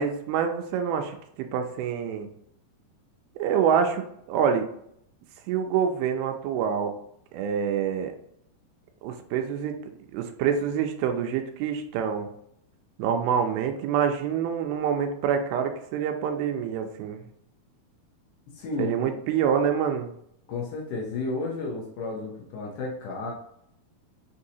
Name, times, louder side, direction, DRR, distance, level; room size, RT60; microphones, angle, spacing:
voice 1, 0.0-2.3 3.4-4.7 5.5-6.9 7.3-8.1 9.0-9.8 10.1-12.3 13.0-17.2 18.8-20.1, right 7 dB, 80° right, 6 dB, 2.4 m, -26 dB
voice 2, 18.5-19.1 20.5-23.3, left 3 dB, 75° left, -2 dB, 1.9 m, -32 dB
6.1 x 2.8 x 2.7 m, 0.72 s
omnidirectional pair, 4.5 m